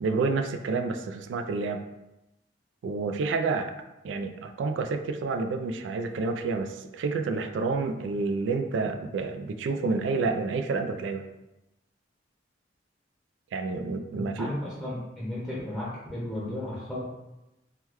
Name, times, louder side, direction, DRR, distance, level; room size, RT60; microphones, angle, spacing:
voice 1, 0.0-1.8 2.8-3.7 4.0-11.2 13.5-14.5, right 4 dB, 75° right, 7 dB, 0.3 m, -29 dB
voice 2, 14.1-17.1, left 1 dB, 5° left, -9 dB, 0.8 m, -34 dB
3.5 x 2.2 x 3.0 m, 0.94 s
head